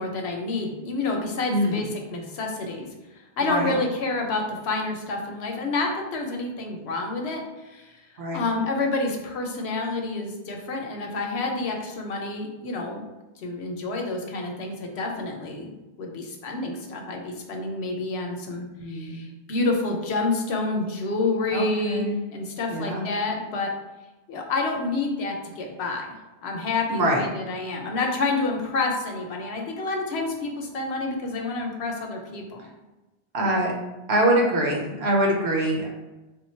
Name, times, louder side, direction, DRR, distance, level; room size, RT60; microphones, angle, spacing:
voice 1, 0.0-2.9 3.4-7.4 7.7-7.9 8.3-13.0 13.4-23.7 24.3-26.1 26.4-32.7, left 3 dB, 85° left, 2 dB, 1.0 m, -28 dB
voice 2, 1.5-1.9 3.4-3.7 8.2-8.4 18.8-19.3 21.5-22.1 22.7-23.0 26.9-27.2 33.3-33.7 34.1-35.9, right 1 dB, 75° right, -1 dB, 1.1 m, -24 dB
3.5 x 2.3 x 4.3 m, 1.1 s
omnidirectional pair, 1.1 m